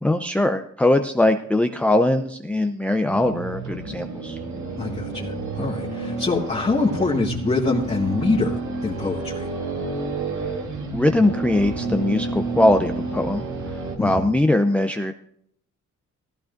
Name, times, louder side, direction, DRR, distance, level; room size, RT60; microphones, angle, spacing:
voice 1, 0.0-4.4 10.9-15.1, left 1 dB, 5° left, 6 dB, 0.6 m, -21 dB
sound 1, 3.0-14.0, right 3 dB, 75° right, 2.7 m, -30 dB
voice 2, 4.8-9.5 14.0-14.4, left 3 dB, 20° left, -4 dB, 1.7 m, -24 dB
15.5 x 14.5 x 2.6 m, 0.68 s
cardioid pair, 90°, 30 cm